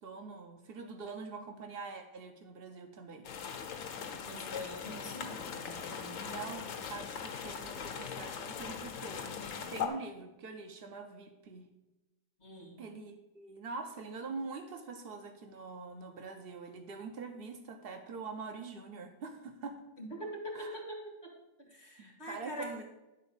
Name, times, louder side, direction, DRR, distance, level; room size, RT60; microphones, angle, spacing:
voice 1, 0.0-3.3 6.3-9.3 9.7-11.6 12.8-19.7 20.5-20.8 22.0-22.8, right 4 dB, 80° right, 5 dB, 0.5 m, -44 dB
sound 1, 3.2-9.9, left 7 dB, 90° left, 1.7 m, -40 dB
voice 2, 4.2-6.4 12.4-12.8 20.0-21.3 21.6-22.7, left 1 dB, 35° left, -1 dB, 2.2 m, -44 dB
10.5 x 4.0 x 7.1 m, 1.0 s
omnidirectional pair, 2.0 m